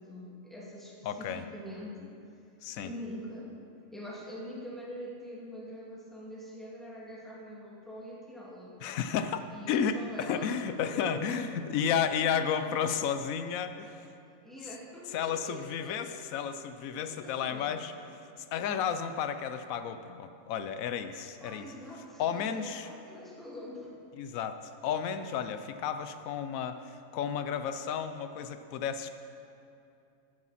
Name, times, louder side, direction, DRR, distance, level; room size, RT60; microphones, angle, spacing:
voice 1, 0.0-2.2 2.8-3.6 3.9-8.8 9.5-11.6 14.4-16.2 17.0-17.8 21.4-23.9 24.8-24.9, equal, ahead, -6 dB, 2.2 m, -44 dB
voice 2, 1.0-1.4 2.6-2.9 8.8-9.4 9.7-14.0 15.1-17.9 18.4-21.7 22.2-22.9 24.2-29.1, left 7 dB, 90° left, 10 dB, 1.0 m, -32 dB
14.5 x 10.0 x 4.1 m, 2.6 s
omnidirectional pair, 1.4 m